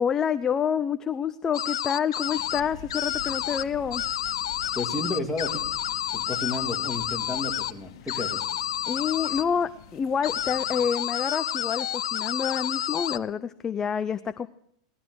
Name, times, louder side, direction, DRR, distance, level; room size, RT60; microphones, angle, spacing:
voice 1, 0.0-4.0 8.1-8.2 8.9-14.5, left 7 dB, 20° left, 12 dB, 0.5 m, -28 dB
sound 1, 1.5-2.6 2.9-3.6 3.9-7.7 8.1-9.4 10.2-13.2, left 11 dB, 90° left, 0.5 m, -30 dB
sound 2, 2.3-10.9, left 7 dB, 65° left, 1.7 m, -47 dB
voice 2, 4.7-5.6 6.1-8.4, left 2 dB, 5° left, 0 dB, 2.3 m, -32 dB
18.0 x 13.0 x 4.7 m, 0.67 s
supercardioid pair, 145°, 3 cm